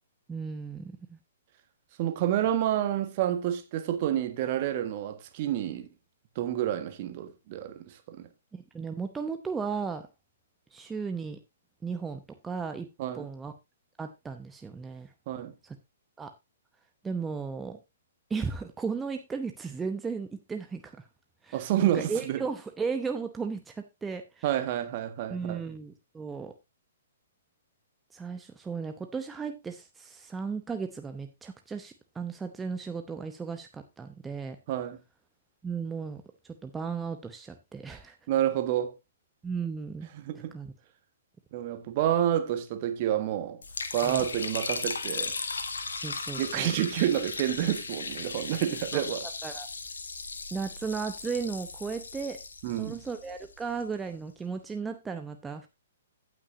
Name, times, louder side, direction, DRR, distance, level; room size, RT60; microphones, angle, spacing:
voice 1, 0.3-1.2 8.5-10.1 10.7-11.4 11.8-12.9 13.1-13.5 14.0-15.1 15.6-15.8 16.2-16.3 17.0-17.8 18.3-21.1 21.4-24.5 25.3-26.5 28.1-34.6 35.6-36.2 36.6-38.1 39.4-40.1 40.5-40.7 44.0-44.2 45.9-46.7 48.9-49.0 49.4-49.7 50.5-52.4 52.8-55.7, right 5 dB, 10° right, 0.8 m, -35 dB
voice 2, 2.0-5.9 6.3-8.3 13.0-13.3 15.3-15.5 21.5-22.4 24.4-25.6 34.7-35.0 38.3-38.9 40.1-40.5 41.5-43.6 43.9-45.4 46.4-49.3 52.6-53.0, right 11 dB, 45° right, 1.5 m, -29 dB
Liquid, 43.6-53.8, left 4 dB, 75° left, 1.4 m, -37 dB
16.5 x 6.1 x 2.7 m
figure-of-eight pair, 120°, 0 cm